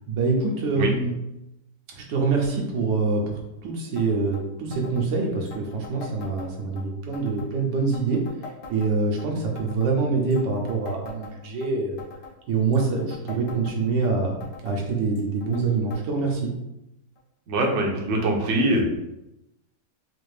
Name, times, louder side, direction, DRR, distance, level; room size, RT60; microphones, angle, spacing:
voice 1, 0.1-1.1 1.9-8.2 8.7-12.0 12.5-14.4 14.6-16.5, right 4 dB, 85° right, 0 dB, 1.5 m, -25 dB
sound 1, 4.0-4.1 4.3-4.4 4.7-5.1 5.5-6.8 7.1-7.5 7.9-9.3 9.6-9.9 10.3-11.7 12.0-12.4 12.7-14.1 14.4-14.8 15.2-15.6 15.9-16.0 16.3-16.4 17.2-17.3 18.0-18.1, left 3 dB, 45° left, 0.8 m, -42 dB
voice 2, 17.5-18.9, right 1 dB, 60° right, 0 dB, 0.8 m, -23 dB
4.4 x 2.5 x 3.2 m, 0.89 s
omnidirectional pair, 1.9 m